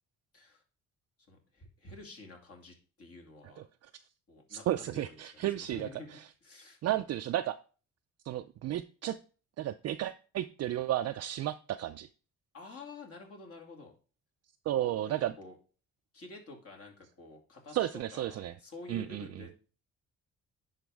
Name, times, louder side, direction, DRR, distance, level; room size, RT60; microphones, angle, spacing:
voice 1, 1.3-3.6 4.3-6.1 6.4-6.8 12.5-13.9 15.0-15.6 16.1-19.5, left 3 dB, 50° left, 0 dB, 2.5 m, -50 dB
voice 2, 3.4-3.9 4.5-6.3 6.8-7.6 8.2-9.2 9.6-12.1 14.7-15.3 17.7-18.5 18.9-19.4, right 13 dB, 55° right, 7 dB, 0.4 m, -33 dB
10.5 x 4.1 x 3.5 m, 0.37 s
cardioid pair, 90°, 30 cm